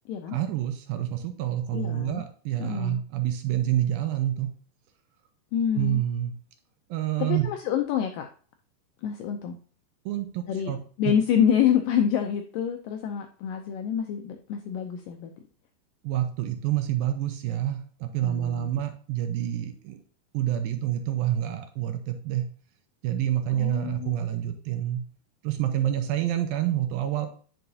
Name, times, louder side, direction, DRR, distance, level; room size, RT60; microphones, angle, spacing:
voice 1, 0.3-4.5 5.8-6.3 6.9-7.5 10.1-10.8 11.1-11.2 16.0-20.0 20.3-22.5 23.0-25.0 25.4-27.3, right 12 dB, 80° right, 7 dB, 2.3 m, -28 dB
voice 2, 1.7-2.2 2.6-3.0 5.5-6.0 7.2-8.3 9.0-9.6 10.5-10.7 11.0-15.3 18.2-18.7 23.5-24.2, left 8 dB, 85° left, 5 dB, 1.9 m, -27 dB
9.3 x 5.7 x 2.7 m, 0.43 s
omnidirectional pair, 4.5 m